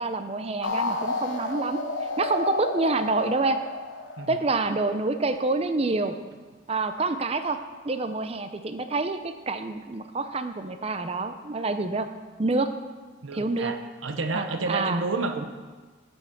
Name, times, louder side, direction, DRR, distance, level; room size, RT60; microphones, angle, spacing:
voice 1, 0.0-1.8 2.2-3.6 4.3-6.1 6.7-7.6 7.8-12.1 12.4-12.7 13.3-13.7 14.3-15.0, right 3 dB, 30° right, 9 dB, 0.5 m, -27 dB
sound 1, 0.6-5.1, left 3 dB, 75° left, 0.9 m, -31 dB
voice 2, 13.2-15.4, right 3 dB, 85° right, 7 dB, 0.8 m, -30 dB
8.0 x 7.1 x 5.9 m, 1.4 s
head